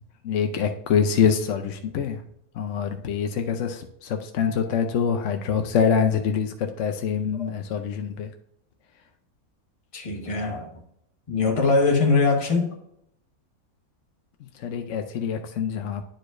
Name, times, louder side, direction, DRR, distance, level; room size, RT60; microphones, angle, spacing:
voice 1, 0.2-2.2 2.6-8.3 14.6-16.0, left 7 dB, 65° left, 0.9 m, -25 dB
voice 2, 9.9-10.7 11.3-12.7, left 3 dB, 25° left, 1.3 m, -22 dB
10.5 x 4.8 x 2.5 m
omnidirectional pair, 1.6 m